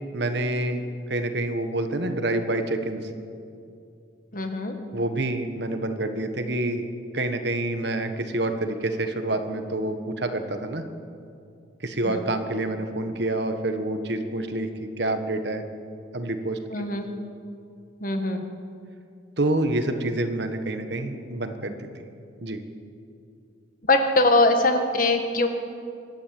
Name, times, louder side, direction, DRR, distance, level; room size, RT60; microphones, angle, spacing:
voice 1, 0.1-0.8 1.1-3.0 4.9-6.9 7.1-10.8 11.8-15.6 16.1-16.9 19.4-21.9 22.4-22.6, right 2 dB, 60° right, 7 dB, 1.5 m, -27 dB
voice 2, 4.3-4.8 12.0-12.3 16.7-17.1 18.0-18.5 23.9-25.5, left 2 dB, 45° left, 5 dB, 1.7 m, -22 dB
24.5 x 12.5 x 8.7 m, 2.5 s
head